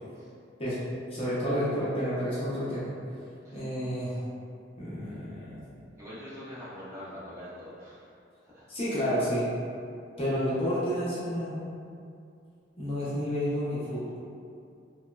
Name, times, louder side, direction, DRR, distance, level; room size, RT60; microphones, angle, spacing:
voice 1, 1.1-2.9 3.5-4.2 4.8-5.6 8.7-9.5 10.2-11.6 12.8-14.0, equal, 30° left, -10 dB, 0.7 m, -30 dB
voice 2, 6.0-8.1 8.5-8.7, left 1 dB, 15° right, -11 dB, 0.6 m, -44 dB
3.0 x 2.0 x 2.3 m, 2.4 s
head